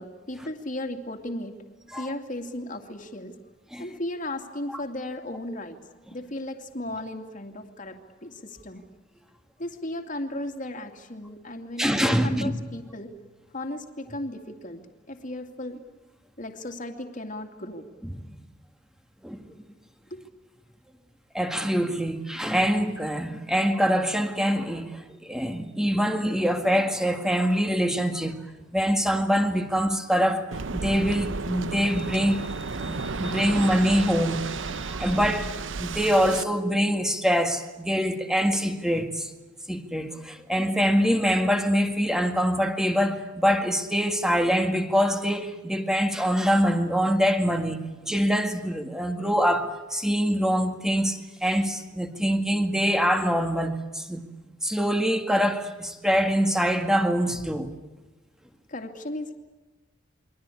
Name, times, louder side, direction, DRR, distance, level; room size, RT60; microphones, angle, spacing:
voice 1, 0.0-1.6 2.0-3.4 3.8-5.8 6.1-8.8 9.6-13.1 13.5-15.8 16.4-17.9 58.7-59.3, left 1 dB, 45° left, 2.5 m, -35 dB
voice 2, 11.8-12.5 18.0-18.4 19.2-19.4 21.3-28.4 28.7-30.5 30.7-39.3 39.7-47.8 48.1-54.2 54.6-57.7, equal, 5° right, 2.0 m, -24 dB
Waves surf, 30.5-36.4, right 4 dB, 85° right, 0.9 m, -33 dB
29.5 x 23.0 x 8.5 m
head